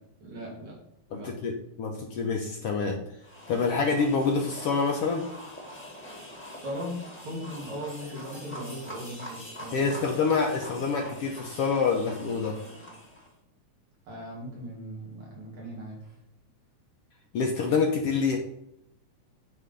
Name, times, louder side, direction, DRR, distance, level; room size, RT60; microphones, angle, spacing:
voice 1, 0.2-0.8 1.1-1.3 6.6-7.0 7.2-10.3 10.8-11.0 14.1-16.2, equal, 70° right, -4 dB, 3.9 m, -39 dB
voice 2, 1.1-3.0 3.5-5.3 9.7-12.6 17.3-18.4, left 5 dB, 70° left, 1 dB, 1.5 m, -26 dB
sound 1, 3.2-13.3, equal, 5° left, 1.2 m, -44 dB
8.8 x 3.8 x 5.2 m, 0.80 s
omnidirectional pair, 3.4 m